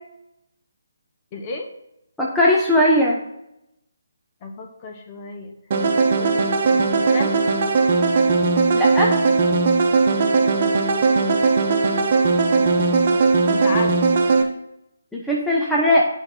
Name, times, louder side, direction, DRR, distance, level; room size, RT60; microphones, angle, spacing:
voice 1, 1.3-1.7 4.4-5.6 6.1-7.4 10.6-12.0 12.5-13.9, left 3 dB, 25° left, 3 dB, 1.2 m, -34 dB
voice 2, 2.2-3.2 8.7-9.1 15.1-16.1, left 1 dB, ahead, -5 dB, 0.8 m, -18 dB
sound 1, 5.7-14.4, right 4 dB, 35° right, 1.2 m, -18 dB
10.0 x 5.1 x 4.1 m, 0.84 s
figure-of-eight pair, 145°, 0 cm